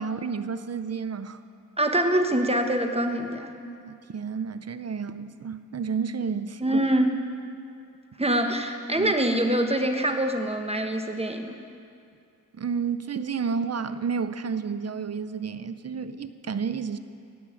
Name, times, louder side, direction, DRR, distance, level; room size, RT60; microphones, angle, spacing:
voice 1, 0.0-1.4 3.7-6.6 9.0-9.1 12.5-17.0, right 6 dB, 45° right, 12 dB, 0.6 m, -31 dB
voice 2, 1.8-3.5 6.6-7.1 8.2-11.6, right 1 dB, 15° right, 5 dB, 1.1 m, -24 dB
17.5 x 6.1 x 8.3 m, 2.4 s
wide cardioid pair, 75°, 34 cm